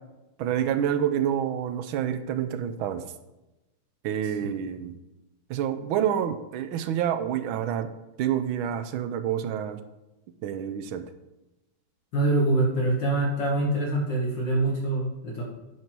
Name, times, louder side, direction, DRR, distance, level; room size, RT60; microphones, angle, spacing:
voice 1, 0.4-3.0 4.0-5.0 5.5-7.9 8.2-9.8 10.4-11.0, right 9 dB, 90° right, 10 dB, 1.5 m, -28 dB
voice 2, 12.1-15.4, right 2 dB, 65° left, -2 dB, 2.1 m, -25 dB
9.4 x 4.6 x 6.0 m, 1.0 s
omnidirectional pair, 2.2 m